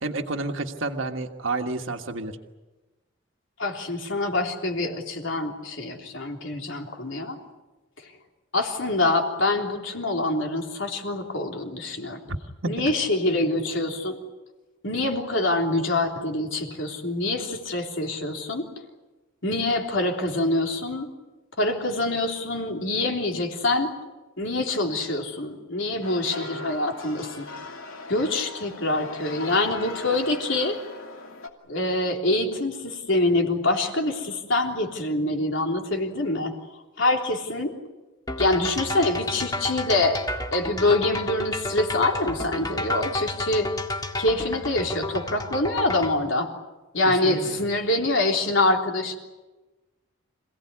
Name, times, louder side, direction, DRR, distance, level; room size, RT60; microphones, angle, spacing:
voice 1, 0.0-2.4 12.3-12.4 12.6-12.7 47.2-47.6, right 2 dB, 70° right, 4 dB, 1.6 m, -30 dB
voice 2, 3.6-7.4 8.5-12.2 12.7-14.2 14.8-18.7 19.4-21.1 21.6-23.9 24.4-27.5 28.1-30.8 31.7-36.5 37.0-37.7 38.4-40.2 40.5-43.7 44.2-46.5 46.9-49.2, left 2 dB, 65° left, 2 dB, 3.5 m, -25 dB
sound 1, 26.0-31.5, left 3 dB, 90° left, 2.7 m, -38 dB
sound 2, 38.3-46.2, left 2 dB, 20° left, 2.0 m, -31 dB
27.0 x 17.5 x 9.8 m, 1.2 s
head